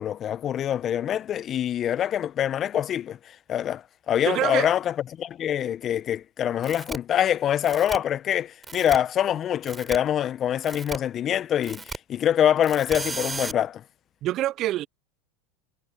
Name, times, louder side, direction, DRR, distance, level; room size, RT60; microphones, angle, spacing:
voice 1, 0.0-13.8, left 10 dB, 35° left, 1.1 m, -25 dB
voice 2, 4.2-4.7 14.2-14.9, right 14 dB, 45° right, 0.6 m, -26 dB
sound 1, 6.6-7.0 7.6-8.0 8.6-9.0 9.6-10.0 10.6-11.0 11.6-12.0 12.6-13.5, right 3 dB, 15° right, 3.9 m, -34 dB
hypercardioid pair, 90°, 0 cm